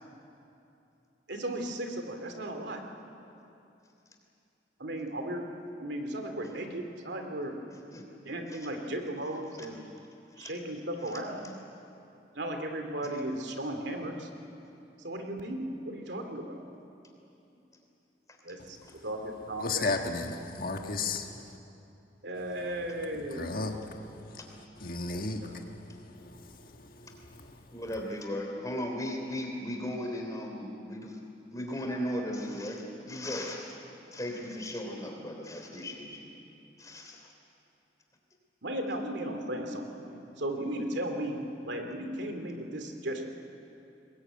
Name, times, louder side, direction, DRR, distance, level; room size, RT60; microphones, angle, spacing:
voice 1, 1.3-2.8 4.8-5.5 5.8-7.6 8.2-9.8 10.4-11.5 12.3-14.3 15.0-16.6 18.4-18.8 19.0-19.9 22.2-23.5 25.4-25.5 38.6-43.2, right 1 dB, 75° right, 4 dB, 2.7 m, -36 dB
voice 2, 19.6-21.6 22.5-22.7 23.0-27.8, left 3 dB, 50° left, 3 dB, 1.6 m, -36 dB
voice 3, 27.7-31.2 31.5-33.8 34.1-36.3 36.8-37.3, left 1 dB, 20° left, 2 dB, 3.4 m, -36 dB
22.0 x 21.0 x 9.0 m, 2.7 s
head